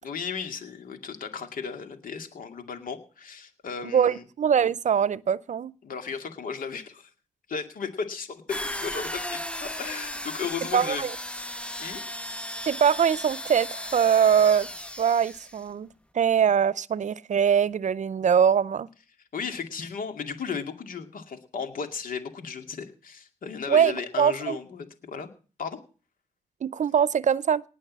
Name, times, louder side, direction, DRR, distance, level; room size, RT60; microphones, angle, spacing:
voice 1, 0.0-4.2 5.8-7.1 7.5-11.0 11.8-12.0 19.3-25.3 25.6-25.8, left 6 dB, 75° left, 2.3 m, -35 dB
voice 2, 3.8-5.7 10.7-11.1 12.7-14.7 15.0-15.9 16.1-18.9 23.7-24.6 26.6-27.6, right 8 dB, 60° right, 0.6 m, -22 dB
sound 1, 8.5-15.6, left 1 dB, 10° left, 1.0 m, -36 dB
19.0 x 6.5 x 7.4 m
cardioid pair, 65°, 14 cm